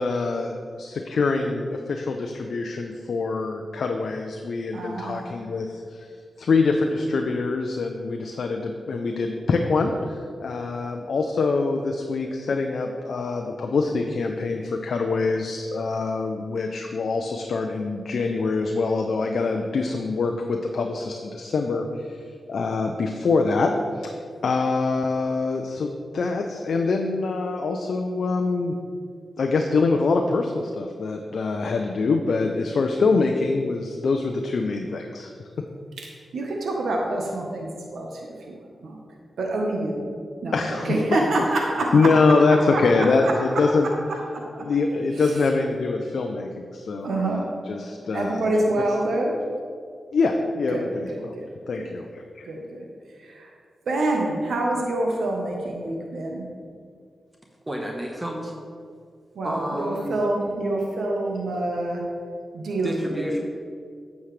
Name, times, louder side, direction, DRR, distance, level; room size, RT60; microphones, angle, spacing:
voice 1, 0.0-6.1 6.4-22.2 22.5-23.7 24.0-24.1 24.4-28.8 29.4-35.3 35.6-35.7 40.5-41.2 41.9-43.9 44.6-48.5 50.1-51.3 51.7-52.2, left 3 dB, 75° left, 3 dB, 0.5 m, -24 dB
voice 2, 4.7-5.2 36.0-39.0 39.4-40.1 40.4-43.6 44.3-44.6 45.1-45.4 47.0-47.5 48.1-49.3 50.7-51.4 51.8-52.1 52.4-53.5 53.9-56.5 59.3-62.0 62.5-63.4, right 2 dB, 80° right, 0 dB, 1.1 m, -27 dB
voice 3, 57.7-58.5 59.4-60.2 62.8-63.4, equal, 20° right, 0 dB, 1.0 m, -30 dB
9.3 x 7.2 x 3.3 m, 2.2 s
cardioid pair, 65°, 0 cm